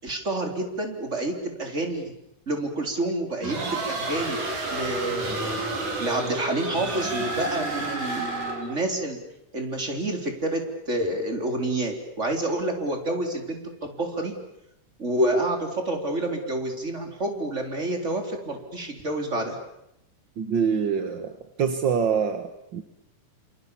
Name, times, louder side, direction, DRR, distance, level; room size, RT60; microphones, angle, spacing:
voice 1, 0.0-2.1 2.5-4.4 4.7-5.6 6.0-9.2 9.5-14.3 15.0-19.6, right 1 dB, 20° right, 4 dB, 4.2 m, -28 dB
sound 1, 3.4-8.8, right 2 dB, 70° right, 6.2 m, -30 dB
voice 2, 20.4-22.8, right 7 dB, 50° right, 8 dB, 1.5 m, -25 dB
28.0 x 27.5 x 7.3 m, 0.82 s
omnidirectional pair, 3.8 m